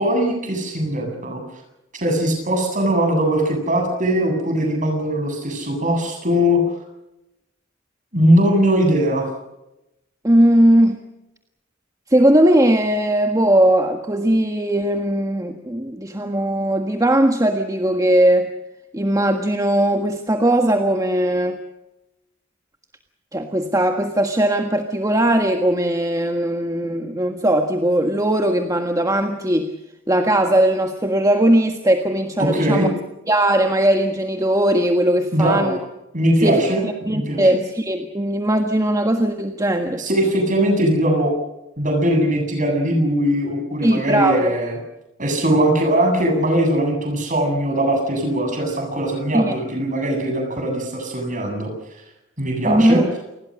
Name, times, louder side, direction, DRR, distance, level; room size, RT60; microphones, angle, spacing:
voice 1, 0.0-1.4 1.9-6.6 8.1-9.3 32.4-32.9 35.3-35.7 36.1-36.8 37.1-37.5 40.0-41.3 41.8-44.8 45.2-51.7 52.4-53.0, right 1 dB, 40° right, 4 dB, 7.9 m, -20 dB
voice 2, 10.2-11.0 12.1-18.5 18.9-21.6 23.3-29.7 30.1-32.9 33.3-35.8 36.4-40.0 43.8-44.5 49.3-49.5 52.6-53.0, right 1 dB, 15° right, 5 dB, 1.6 m, -19 dB
28.5 x 20.5 x 6.5 m, 0.93 s
head